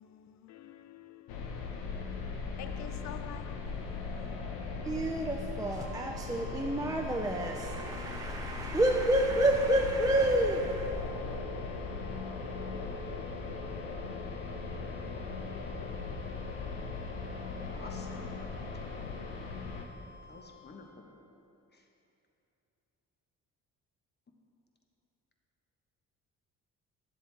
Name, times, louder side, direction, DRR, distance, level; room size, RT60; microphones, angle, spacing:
voice 1, 0.0-2.2 2.6-3.9, left 11 dB, 50° left, 0.5 m, -49 dB
sound 1, 1.3-19.8, left 4 dB, 85° left, 0.9 m, -39 dB
voice 2, 4.8-11.1, right 1 dB, 10° right, 0.5 m, -29 dB
sound 2, 5.6-20.9, left 4 dB, 35° right, 1.6 m, -54 dB
voice 3, 17.7-18.3 20.3-21.0 21.7-21.8, left 3 dB, 30° left, 1.1 m, -50 dB
10.0 x 7.4 x 3.4 m
supercardioid pair, 65°, 35 cm